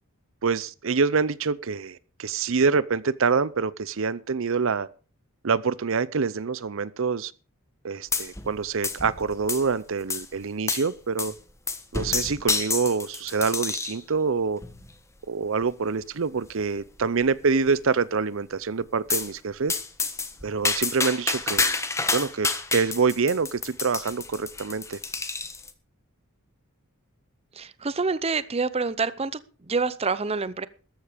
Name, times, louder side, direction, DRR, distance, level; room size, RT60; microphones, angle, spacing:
voice 1, 0.4-4.9 5.4-7.3 7.8-11.3 11.9-14.6 15.3-19.8 20.4-21.7 22.1-25.0, right 5 dB, 65° right, 0.6 m, -26 dB
sound 1, 8.1-8.6 8.8-9.7 10.1-10.3 10.7-10.9 11.2-11.4 11.7-14.0 14.6-15.0 15.6-15.7 16.0-16.1 16.4-16.5 17.0-17.4 19.1-19.3 19.7-25.7, left 3 dB, 15° left, 1.4 m, -29 dB
voice 2, 27.6-29.3 29.7-30.7, right 4 dB, 30° right, 0.7 m, -27 dB
14.0 x 11.5 x 5.1 m
head